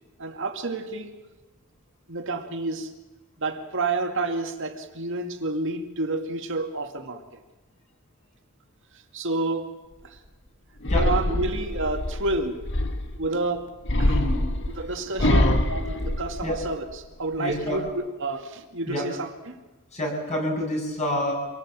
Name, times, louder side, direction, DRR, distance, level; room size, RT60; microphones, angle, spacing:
voice 1, 0.2-1.1 2.1-2.9 3.4-7.4 9.1-9.7 10.1-10.2 10.9-12.6 13.2-13.7 14.0-14.2 14.8-19.6, right 2 dB, 60° right, 4 dB, 2.3 m, -29 dB
sound 1, 10.8-13.2 13.8-16.9 17.3-17.9, left 1 dB, 55° left, 1.9 m, -25 dB
voice 2, 14.1-14.5 15.2-15.6 16.4-16.6 17.4-17.8 18.9-19.0 19.9-21.3, left 1 dB, 30° left, 0 dB, 7.7 m, -28 dB
26.0 x 19.0 x 7.6 m, 1.2 s
head